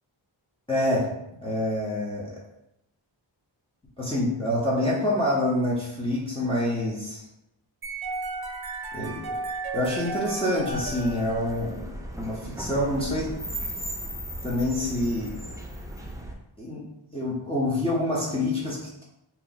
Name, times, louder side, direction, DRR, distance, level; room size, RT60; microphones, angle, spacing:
voice 1, 0.7-1.1 1.4-2.3 4.0-7.2 8.9-9.4 9.7-11.9 12.2-13.3 14.4-15.3 16.6-16.8 17.1-19.0, left 1 dB, 10° left, -7 dB, 0.8 m, -26 dB
sound 1, 7.8-11.9, right 3 dB, 50° right, 0.6 m, -34 dB
sound 2, 10.7-16.3, right 1 dB, 5° right, 0.4 m, -36 dB
2.8 x 2.4 x 4.0 m, 0.82 s
wide cardioid pair, 70°, 48 cm